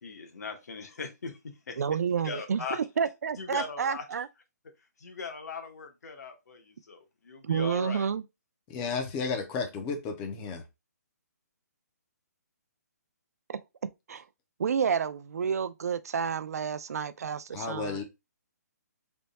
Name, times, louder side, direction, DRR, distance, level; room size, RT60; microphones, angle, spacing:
voice 1, 0.0-1.8 2.2-2.8 3.4-4.0 5.0-8.0, left 5 dB, 65° left, 1.1 m, -39 dB
voice 2, 1.8-4.3 7.4-8.2 13.5-13.6 14.1-14.2 14.6-18.0, right 7 dB, 60° right, 0.4 m, -30 dB
voice 3, 8.7-10.6 17.5-18.0, left 5 dB, 10° left, 0.4 m, -33 dB
3.4 x 2.2 x 4.0 m
hypercardioid pair, 170°, 9 cm